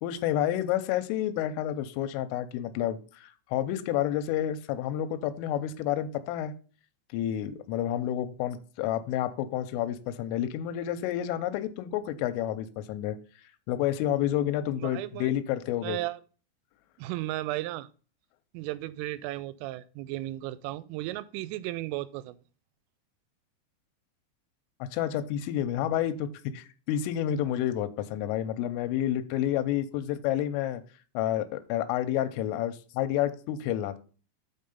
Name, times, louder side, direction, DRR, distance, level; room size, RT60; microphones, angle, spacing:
voice 1, 0.0-6.5 7.1-13.2 13.7-16.0 24.9-30.8 31.1-34.0, left 11 dB, 90° left, 3.2 m, -29 dB
voice 2, 14.8-15.3 15.8-16.2 17.0-17.9 18.5-22.4, right 16 dB, 85° right, 3.0 m, -35 dB
6.8 x 5.5 x 5.2 m
omnidirectional pair, 5.8 m